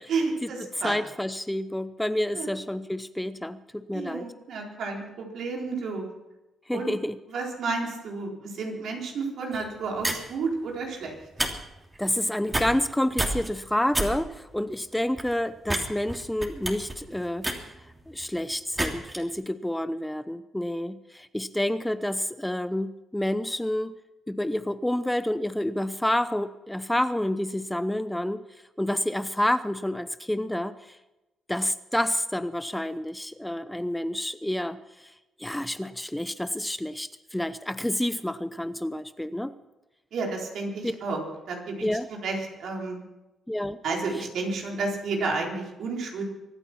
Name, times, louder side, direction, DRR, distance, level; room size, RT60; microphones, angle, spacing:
voice 1, 0.1-1.0 2.3-2.5 3.9-6.1 6.7-6.9 7.3-11.2 40.1-41.2 41.5-43.0 43.8-46.2, right 3 dB, 70° right, 0 dB, 3.9 m, -31 dB
voice 2, 0.8-4.3 6.7-7.1 12.0-17.7 18.1-23.9 24.3-28.4 28.8-31.0 31.5-34.8 35.4-39.5 40.8-40.9 41.8-42.1 43.5-43.8, left 1 dB, 5° left, 12 dB, 0.8 m, -29 dB
sound 1, 9.5-9.7 10.0-10.3 11.2-11.5 11.8-12.0 12.5-12.9 13.2-13.5 13.9-14.1 14.5-14.6 15.2-15.3 15.6-15.8 16.1-18.2 18.8-19.2, right 1 dB, 20° right, 3.1 m, -28 dB
24.0 x 9.0 x 5.9 m, 0.99 s
supercardioid pair, 55°, 0 cm